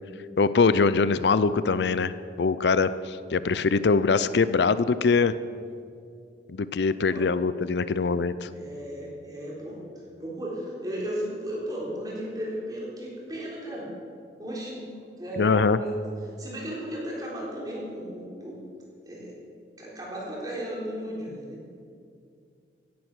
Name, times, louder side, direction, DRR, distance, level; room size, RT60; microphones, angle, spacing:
voice 1, 0.4-5.3 6.5-8.5 15.4-15.8, left 4 dB, 70° left, 15 dB, 0.5 m, -23 dB
voice 2, 8.5-13.9 14.4-14.9 15.2-15.9 16.4-18.6 19.0-19.4 19.8-21.6, equal, 20° right, -4 dB, 4.0 m, -35 dB
16.0 x 11.5 x 6.2 m, 2.4 s
head